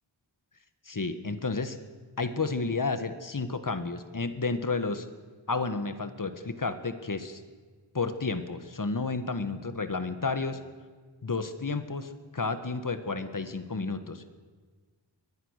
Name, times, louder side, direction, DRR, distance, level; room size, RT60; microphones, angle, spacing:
voice 1, 0.8-1.8 2.2-5.1 5.5-7.4 7.9-10.6 11.2-14.3, left 3 dB, 45° left, 10 dB, 1.6 m, -31 dB
24.0 x 20.0 x 6.7 m, 1.5 s
wide cardioid pair, 90°, 46 cm